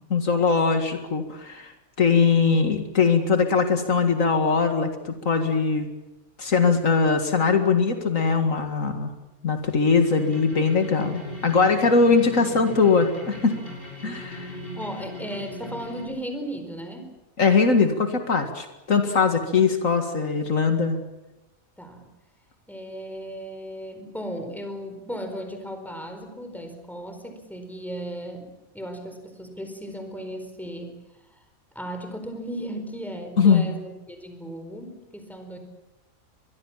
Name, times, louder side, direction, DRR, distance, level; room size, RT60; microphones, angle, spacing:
voice 1, 0.1-1.7 2.0-5.9 6.4-9.1 9.4-13.5 14.0-14.5 17.4-21.0 33.4-33.7, left 5 dB, 70° left, 6 dB, 2.3 m, -21 dB
sound 1, 10.1-16.0, left 1 dB, 40° left, 7.8 m, -39 dB
voice 2, 14.1-17.1 19.2-19.4 21.8-22.1 22.7-31.0 31.7-35.6, equal, ahead, 5 dB, 4.4 m, -36 dB
24.5 x 21.5 x 7.4 m, 0.96 s
omnidirectional pair, 1.4 m